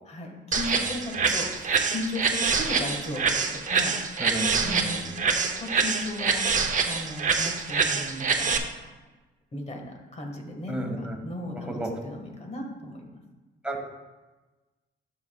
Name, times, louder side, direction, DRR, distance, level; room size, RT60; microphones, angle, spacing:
voice 1, 0.1-4.2 4.6-8.9 9.5-13.1, left 1 dB, 35° left, 2 dB, 1.7 m, -36 dB
sound 1, 0.5-8.6, right 5 dB, 40° right, 0.8 m, -25 dB
voice 2, 4.2-5.0 10.7-11.2 11.5-12.0 13.6-13.8, right 1 dB, 5° right, 0 dB, 1.7 m, -33 dB
12.0 x 5.7 x 2.4 m, 1.2 s
cardioid pair, 90°, 20 cm